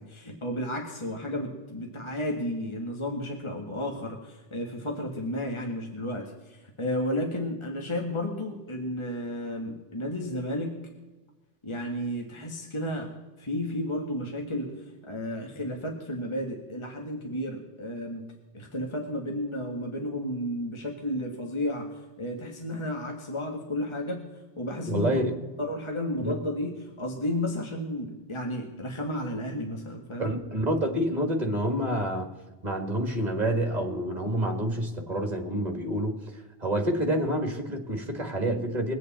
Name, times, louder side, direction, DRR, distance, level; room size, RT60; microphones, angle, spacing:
voice 1, 0.0-10.8 11.6-13.1 13.4-14.7 15.0-21.9 22.2-24.3 24.6-25.2 25.6-30.3, left 1 dB, 25° left, 1 dB, 1.6 m, -32 dB
voice 2, 24.9-25.3 26.2-26.3 30.2-32.3 32.6-36.2 36.6-38.9, right 1 dB, 35° right, 4 dB, 1.9 m, -28 dB
22.5 x 8.3 x 4.2 m, 1.2 s
omnidirectional pair, 1.2 m